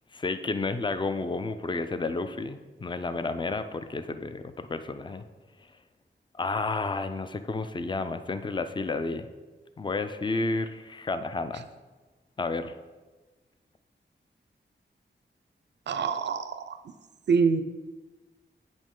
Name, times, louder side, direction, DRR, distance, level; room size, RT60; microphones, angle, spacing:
voice 1, 0.1-5.2 6.4-9.3 9.8-11.7 12.4-12.7, left 3 dB, 25° left, 10 dB, 0.4 m, -31 dB
voice 2, 15.9-16.8 17.3-17.6, right 5 dB, 65° right, 10 dB, 0.4 m, -25 dB
8.5 x 5.2 x 3.7 m, 1.2 s
wide cardioid pair, 95°, 19 cm